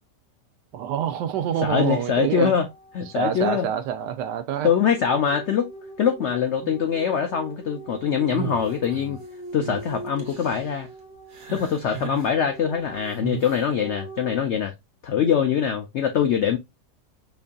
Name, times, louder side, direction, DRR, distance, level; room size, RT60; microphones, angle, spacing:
voice 1, 0.7-2.5 3.2-4.7 6.6-6.7, right 9 dB, 80° right, 1.2 m, -26 dB
sound 1, 1.4-3.8 4.9-14.4, right 2 dB, 40° left, 0.7 m, -42 dB
voice 2, 1.6-2.7 2.9-3.7 4.6-5.7 6.0-9.2 9.5-10.9 11.5-14.7 15.0-16.6, left 8 dB, 85° left, 0.6 m, -23 dB
sound 2, 8.3-9.2 9.6-9.8 10.2-10.7 11.3-12.3 13.2-13.6, right 8 dB, 55° right, 1.5 m, -35 dB
5.2 x 2.6 x 2.3 m
omnidirectional pair, 1.8 m